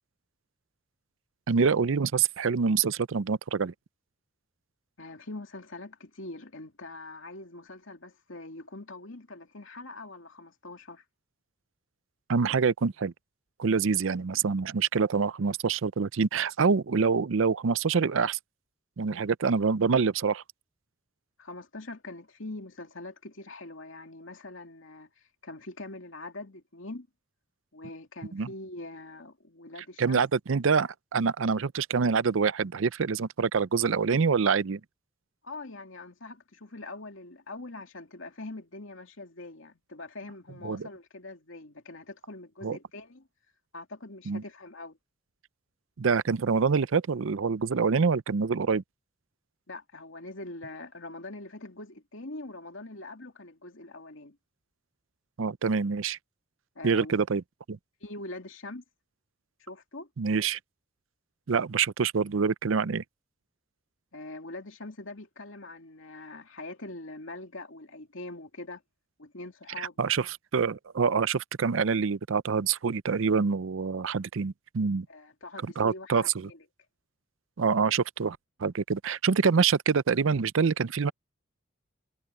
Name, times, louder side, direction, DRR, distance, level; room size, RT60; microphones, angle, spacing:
voice 1, 1.5-3.7 12.3-13.1 13.6-18.4 19.0-20.4 28.3-28.5 30.0-34.8 40.6-40.9 42.6-42.8 44.3-44.4 46.0-48.8 55.4-56.2 56.8-57.4 57.7-57.8 60.2-60.6 61.5-63.0 69.8-75.1 75.6-76.5 77.6-81.1, right 5 dB, 75° right, 0.5 m, -26 dB
voice 2, 5.0-11.0 21.4-25.1 25.4-27.1 27.7-30.3 35.4-43.3 43.7-45.0 49.7-54.4 56.8-57.1 58.0-58.8 59.6-60.1 64.1-68.8 69.2-70.0 75.1-76.6, left 2 dB, 70° left, 2.6 m, -43 dB
head